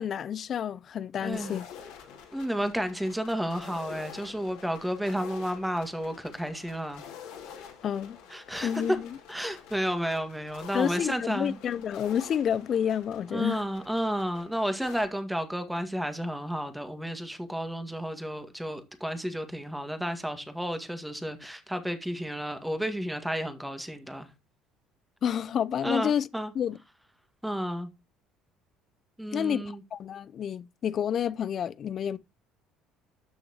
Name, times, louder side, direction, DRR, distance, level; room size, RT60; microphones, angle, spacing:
voice 1, 0.0-1.7 7.8-8.2 8.6-9.2 10.7-13.6 25.2-26.3 26.5-26.8 29.3-32.2, left 8 dB, 45° left, 0.6 m, -29 dB
voice 2, 1.2-1.6 2.3-7.0 8.3-8.7 9.3-11.6 13.3-24.3 25.8-26.5 27.4-27.9 29.2-29.8, equal, 5° right, 1.9 m, -32 dB
sound 1, 1.3-15.1, left 7 dB, 70° left, 3.0 m, -47 dB
13.0 x 6.4 x 3.0 m
hypercardioid pair, 60°, 0 cm